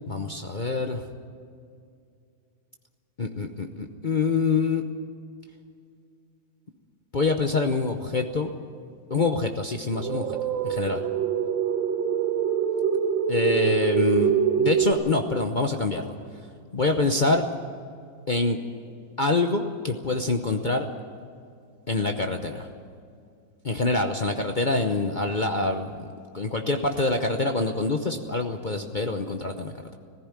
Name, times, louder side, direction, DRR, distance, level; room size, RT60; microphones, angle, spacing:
voice 1, 0.1-1.0 3.2-4.8 7.1-8.6 9.1-10.4 10.6-11.0 13.3-16.1 16.7-17.4 18.3-18.6 19.2-20.9 21.9-22.7 23.6-26.1 26.3-30.0, left 3 dB, 40° left, 5 dB, 0.6 m, -25 dB
sound 1, 9.9-14.9, right 7 dB, 85° right, 1.9 m, -24 dB
17.5 x 15.5 x 9.7 m, 2.4 s
omnidirectional pair, 2.0 m